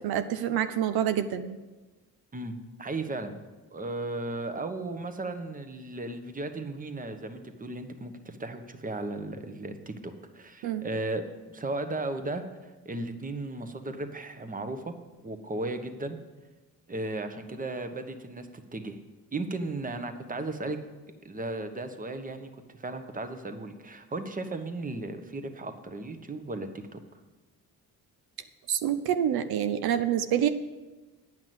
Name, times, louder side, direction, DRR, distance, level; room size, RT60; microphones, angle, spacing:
voice 1, 0.0-1.6 10.6-10.9 28.7-30.5, right 10 dB, 85° right, 10 dB, 0.6 m, -27 dB
voice 2, 2.3-3.4 3.7-11.2 11.5-14.9 15.2-16.2 16.9-19.0 19.3-20.8 21.2-27.0, right 2 dB, 25° right, 8 dB, 1.0 m, -35 dB
9.3 x 5.9 x 7.8 m, 1.2 s
cardioid pair, 85°, 36 cm